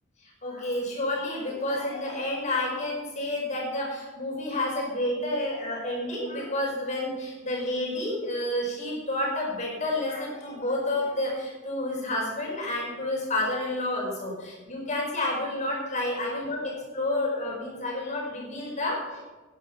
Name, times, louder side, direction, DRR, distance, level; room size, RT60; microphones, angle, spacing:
voice 1, 0.2-19.2, left 1 dB, 35° left, -2 dB, 4.9 m, -30 dB
11.5 x 10.0 x 5.9 m, 1.3 s
head